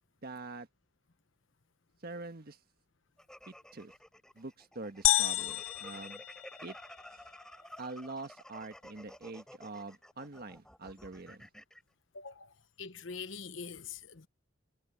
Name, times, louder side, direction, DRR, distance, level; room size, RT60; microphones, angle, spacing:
voice 1, 0.2-0.7 2.0-2.6 3.5-3.9 4.3-6.2 6.6-6.7 7.8-11.5, right 3 dB, 50° right, 1.5 m, -44 dB
sound 1, 3.2-11.8, equal, 5° left, 7.0 m, -52 dB
sound 2, 5.0-7.0, left 16 dB, 90° left, 0.4 m, -30 dB
voice 2, 12.1-14.3, left 5 dB, 70° left, 1.1 m, -44 dB
head